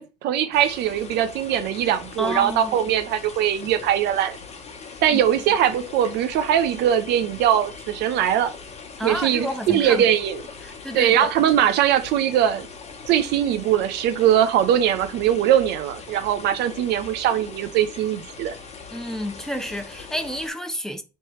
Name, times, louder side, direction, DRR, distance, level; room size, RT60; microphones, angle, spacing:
voice 1, 0.0-4.4 5.0-8.5 9.0-10.4 10.9-12.7 13.1-18.5, right 10 dB, 80° right, 0.6 m, -21 dB
sound 1, 0.5-20.5, left 5 dB, 40° left, 1.0 m, -41 dB
voice 2, 2.2-2.8 5.1-5.2 9.0-10.1 10.6-11.3 18.9-21.0, equal, 5° left, 0.5 m, -30 dB
3.2 x 3.0 x 4.4 m
cardioid pair, 110°, 17 cm